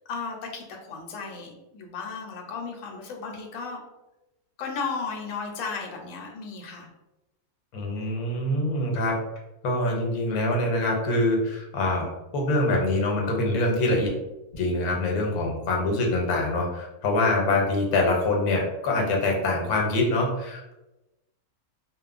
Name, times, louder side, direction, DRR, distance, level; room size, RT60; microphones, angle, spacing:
voice 1, 0.1-3.8 4.6-6.9, left 5 dB, 70° left, 1 dB, 0.9 m, -35 dB
voice 2, 7.7-9.1 9.6-14.1 14.5-20.7, left 2 dB, 85° left, 0 dB, 1.1 m, -25 dB
2.9 x 2.0 x 2.3 m, 0.97 s
omnidirectional pair, 1.6 m